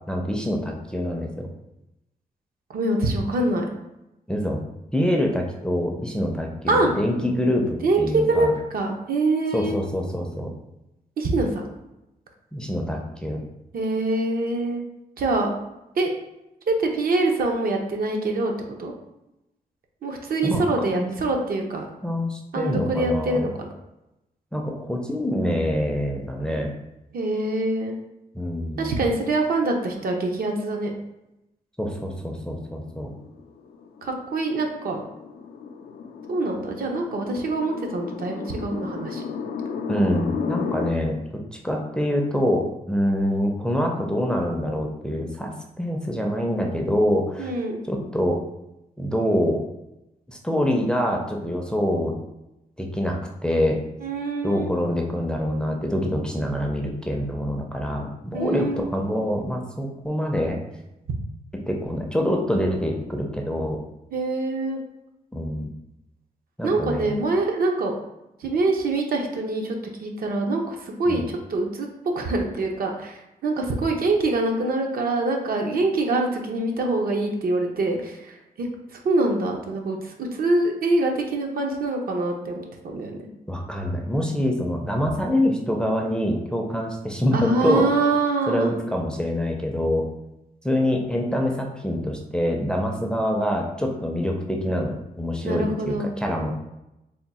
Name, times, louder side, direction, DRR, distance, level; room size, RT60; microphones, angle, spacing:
voice 1, 0.1-1.5 4.3-4.6 4.9-8.5 9.5-10.5 12.5-13.4 20.4-21.1 22.0-23.4 24.5-26.7 28.3-28.9 31.8-33.1 39.9-41.2 41.5-45.5 45.8-47.5 47.9-48.4 49.0-49.6 50.3-52.1 52.8-53.8 54.4-60.6 61.7-63.8 65.3-65.7 66.6-67.1 71.1-71.2 83.5-87.9 88.5-90.1 90.6-96.6, equal, 5° left, 0 dB, 0.4 m, -25 dB
voice 2, 2.7-3.7 6.7-6.9 7.8-9.8 11.2-11.7 13.7-14.8 15.2-15.5 15.9-16.1 16.7-18.5 18.8-18.9 20.0-21.9 22.5-23.5 27.1-27.9 28.8-30.9 34.0-35.0 36.3-39.2 47.4-47.8 54.0-54.7 58.3-58.9 64.1-64.8 66.6-67.9 68.4-71.9 72.1-83.2 87.3-88.8 95.4-96.1, right 2 dB, 70° right, 2 dB, 0.7 m, -24 dB
sound 1, 32.9-40.9, left 6 dB, 90° left, 0.4 m, -33 dB
3.5 x 2.2 x 4.1 m, 0.91 s
wide cardioid pair, 140°, 16 cm